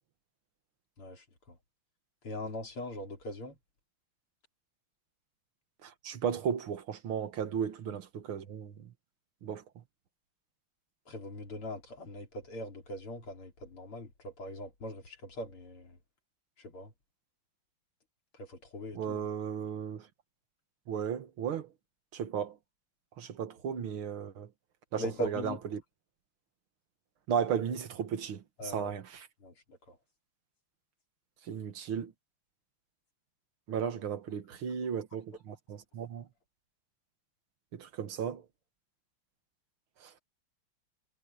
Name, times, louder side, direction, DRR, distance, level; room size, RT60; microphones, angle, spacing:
voice 1, 1.0-1.6 2.2-3.6 11.1-16.0 16.6-16.9 18.4-19.2 25.0-25.6 28.6-28.9 29.4-30.0, equal, 85° left, 5.1 m, -41 dB
voice 2, 5.8-8.9 9.4-9.6 19.0-20.1 20.9-21.7 22.1-22.6 23.2-24.5 24.9-25.8 27.3-29.3 31.4-32.1 33.7-36.3 37.7-38.5 40.0-40.1, right 7 dB, 75° right, 2.2 m, -35 dB
omnidirectional pair, 2.4 m